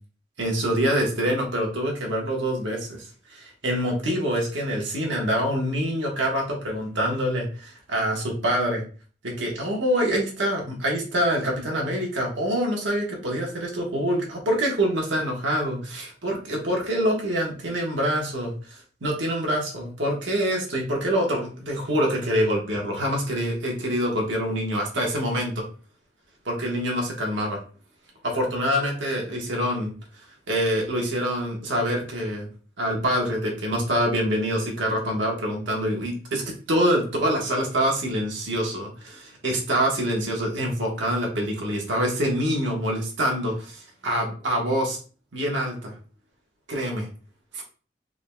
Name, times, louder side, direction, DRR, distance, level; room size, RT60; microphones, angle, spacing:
voice 1, 0.4-8.8 9.2-25.7 26.4-27.6 28.2-32.5 32.8-45.0 45.3-46.0 46.7-47.1 47.5-47.6, equal, 85° right, -1 dB, 1.2 m, -25 dB
3.8 x 3.4 x 2.2 m, 0.38 s
head